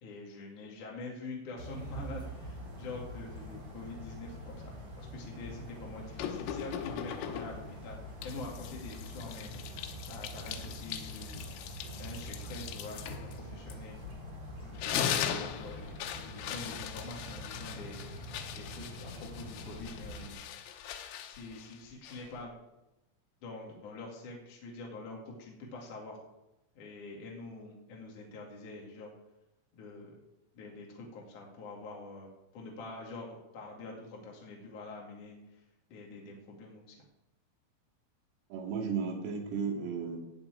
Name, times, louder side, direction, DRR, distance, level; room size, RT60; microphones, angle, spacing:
voice 1, 0.0-14.1 14.5-20.4 21.2-22.5 23.4-26.2 26.7-29.1 29.7-30.2 30.5-35.6 35.9-37.0, left 2 dB, 50° left, -1 dB, 2.9 m, -46 dB
sound 1, 1.6-20.3, equal, 30° right, 3.1 m, -45 dB
sound 2, 6.2-7.7 8.2-14.3 14.6-22.5, left 9 dB, 85° left, 3.5 m, -40 dB
voice 2, 38.5-40.2, right 5 dB, 80° right, -1 dB, 4.8 m, -34 dB
15.5 x 6.1 x 9.0 m, 0.94 s
omnidirectional pair, 5.9 m